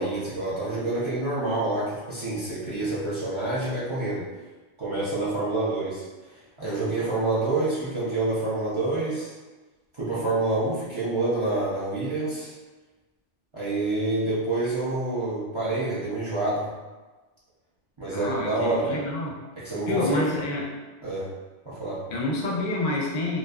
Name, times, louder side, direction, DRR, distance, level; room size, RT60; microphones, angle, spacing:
voice 1, 0.0-4.3 4.8-6.0 6.6-9.3 9.9-12.5 13.5-16.7 18.0-19.0 19.6-20.2 21.0-21.3 21.7-22.0, right 2 dB, 40° right, -10 dB, 0.4 m, -27 dB
voice 2, 18.1-19.4 19.9-20.7 22.1-23.4, left 2 dB, 55° left, -2 dB, 0.5 m, -28 dB
2.6 x 2.3 x 2.2 m, 1.2 s
omnidirectional pair, 1.2 m